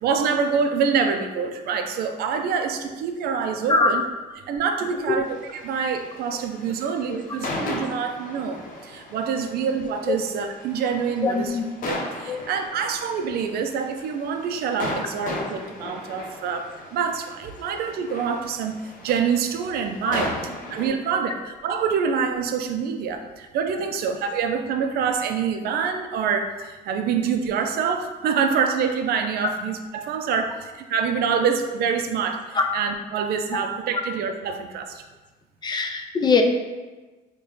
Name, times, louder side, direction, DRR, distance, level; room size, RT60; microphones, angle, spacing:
voice 1, 0.0-4.0 4.5-11.6 11.9-20.3 20.7-35.0, right 6 dB, 65° right, 6 dB, 0.4 m, -26 dB
sound 1, 5.3-20.9, left 2 dB, 50° left, 0.7 m, -36 dB
voice 2, 11.2-11.6 12.3-12.4 20.0-20.3 32.5-32.7 33.5-33.6 35.6-36.4, left 4 dB, 25° left, 4 dB, 0.3 m, -22 dB
3.8 x 2.2 x 3.2 m, 1.2 s
cardioid pair, 110°, 17 cm